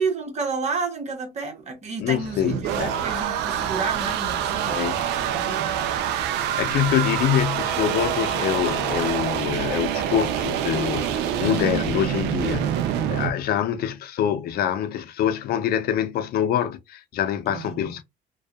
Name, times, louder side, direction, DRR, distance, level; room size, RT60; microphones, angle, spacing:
voice 1, 0.0-5.0 5.3-5.7 17.5-17.9, right 4 dB, 40° right, 1.1 m, -30 dB
voice 2, 2.0-2.9 4.7-5.0 6.3-12.8 13.1-18.0, left 10 dB, 65° left, 0.5 m, -25 dB
sound 1, 2.1-13.3, right 9 dB, 90° right, 0.4 m, -26 dB
2.6 x 2.3 x 2.2 m
cardioid pair, 110°, 17 cm